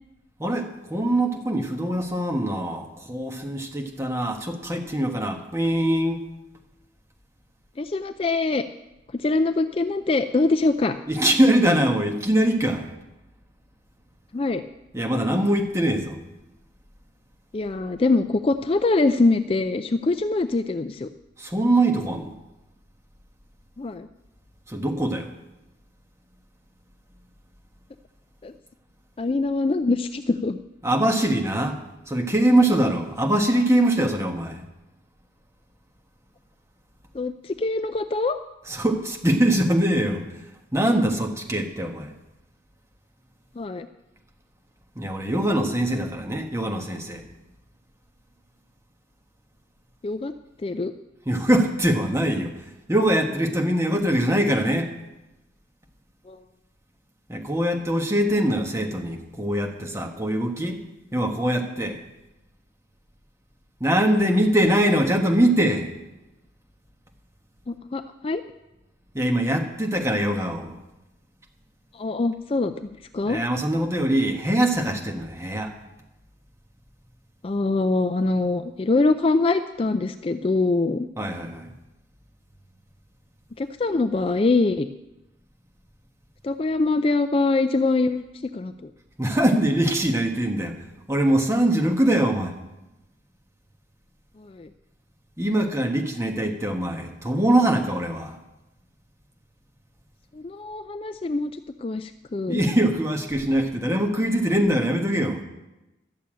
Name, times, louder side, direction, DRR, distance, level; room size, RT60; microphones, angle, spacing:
voice 1, 0.4-6.2 11.1-12.9 14.9-16.2 21.4-22.3 24.7-25.3 30.8-31.8 32.1-34.6 38.7-40.3 40.7-42.1 45.0-47.2 51.3-52.5 52.9-54.9 57.3-60.8 61.1-62.0 63.8-65.9 69.1-70.7 73.2-75.7 81.2-81.7 89.2-90.8 91.1-92.5 95.4-98.4 102.5-105.4, right 1 dB, 15° right, 3 dB, 1.2 m, -23 dB
voice 2, 7.8-8.6 9.1-11.0 14.3-14.6 17.5-21.1 23.8-24.1 28.4-28.5 29.2-30.6 37.1-38.4 43.6-43.9 50.0-50.3 50.6-50.9 56.3-56.4 67.7-68.4 71.9-73.4 77.4-81.1 83.6-84.9 86.4-88.2 88.5-88.9 94.4-94.7 100.4-101.5 101.8-102.6, left 3 dB, 30° left, 9 dB, 0.4 m, -23 dB
12.5 x 6.9 x 8.8 m, 0.98 s
head